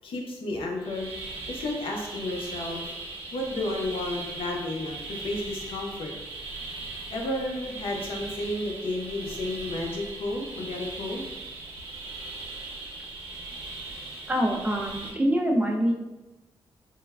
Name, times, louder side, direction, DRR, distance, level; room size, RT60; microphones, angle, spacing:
voice 1, 0.0-1.1 1.5-2.8 3.3-6.1 7.1-11.2, left 1 dB, 75° left, 0 dB, 0.5 m, -32 dB
sound 1, 0.8-15.1, right 2 dB, 75° right, 0.6 m, -39 dB
voice 2, 14.3-15.9, equal, 15° right, 1 dB, 0.4 m, -25 dB
3.2 x 2.1 x 2.2 m, 1.1 s
cardioid pair, 65°, 9 cm